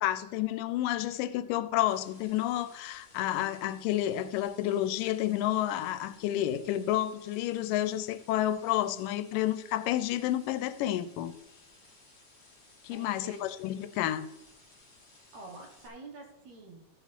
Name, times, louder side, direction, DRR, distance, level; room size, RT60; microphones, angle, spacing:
voice 1, 0.0-11.3 12.8-14.3, left 13 dB, 85° left, 2.2 m, -30 dB
sound 1, 1.9-15.9, left 2 dB, 25° left, 1.0 m, -59 dB
voice 2, 12.9-13.5 15.3-16.8, right 2 dB, 60° right, 2.6 m, -47 dB
14.0 x 4.8 x 5.3 m
omnidirectional pair, 3.8 m